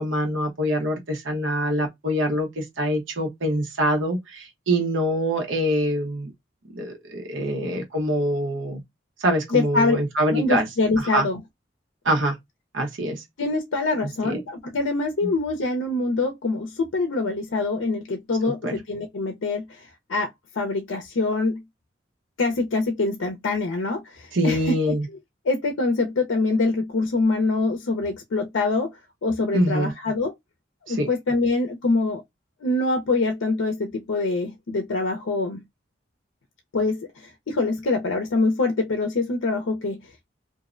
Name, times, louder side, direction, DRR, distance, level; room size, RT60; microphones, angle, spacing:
voice 1, 0.0-6.3 6.7-8.8 9.2-10.7 11.0-11.3 12.0-12.4 12.7-13.2 14.2-14.4 15.2-15.3 18.4-18.7 24.3-25.1 29.5-29.9 30.9-31.1, equal, 75° right, 0.9 m, -24 dB
voice 2, 9.5-10.0 10.3-11.4 13.4-20.3 20.5-21.6 22.4-24.9 25.4-28.9 29.2-30.3 30.9-32.2 32.6-35.6 36.7-40.0, left 3 dB, 75° left, 0.5 m, -24 dB
2.6 x 2.0 x 2.4 m
head